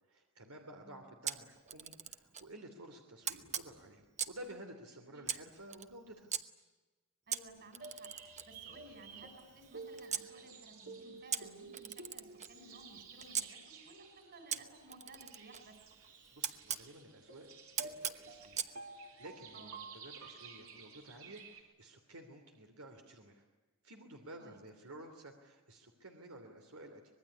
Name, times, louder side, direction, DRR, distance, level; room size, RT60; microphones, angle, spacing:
voice 1, 0.1-6.3 16.3-17.5 17.8-23.4 23.8-27.1, right 1 dB, 90° right, 4 dB, 2.9 m, -53 dB
Camera, 1.3-2.5 3.2-4.5 5.2-6.4 7.3-10.3 11.3-13.5 14.5-16.9 17.8-18.7, right 8 dB, 35° right, 1.0 m, -41 dB
voice 2, 7.3-8.1 8.4-15.8 19.5-19.8 24.4-24.6, right 2 dB, 50° right, 5 dB, 6.3 m, -56 dB
sound 1, 7.8-21.6, right 4 dB, 75° right, 4.0 m, -52 dB
25.0 x 20.5 x 9.8 m, 1.2 s
head